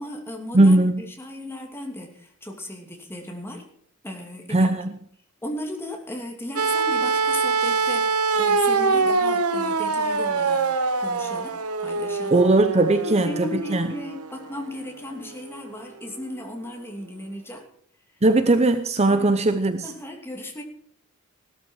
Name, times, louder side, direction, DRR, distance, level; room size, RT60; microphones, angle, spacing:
voice 1, 0.0-3.6 4.0-4.7 5.4-10.7 11.0-12.4 13.0-17.7 19.1-19.3 19.8-20.6, left 1 dB, 10° left, 2 dB, 2.8 m, -36 dB
voice 2, 0.5-1.0 4.5-4.9 12.3-13.9 18.2-19.9, right 2 dB, 30° right, 9 dB, 0.7 m, -19 dB
sound 1, 6.6-14.7 15.9-16.0, right 4 dB, 90° right, 1.2 m, -24 dB
16.5 x 13.0 x 4.7 m, 0.64 s
head